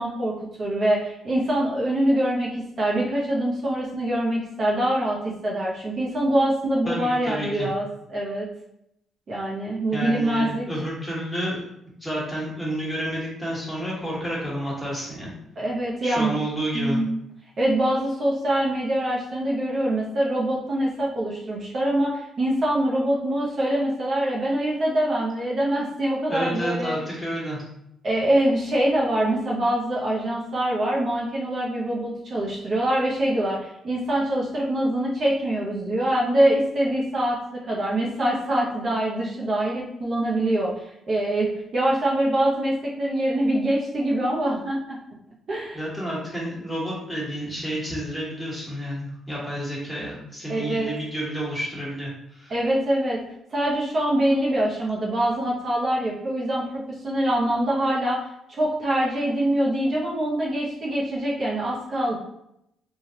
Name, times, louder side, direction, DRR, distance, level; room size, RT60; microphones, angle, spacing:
voice 1, 0.0-8.5 9.3-10.6 15.6-16.3 16.7-17.2 17.6-26.9 28.0-37.4 37.6-40.7 41.1-45.0 45.5-45.8 50.5-50.9 52.5-53.2 53.5-58.2 58.5-62.2, right 1 dB, 50° right, -4 dB, 0.7 m, -24 dB
voice 2, 6.8-7.7 9.9-11.6 12.0-15.3 16.0-17.0 26.3-27.6 45.7-52.5, right 1 dB, 10° left, -6 dB, 1.4 m, -30 dB
3.1 x 2.3 x 2.8 m, 0.79 s
cardioid pair, 90°, 0 cm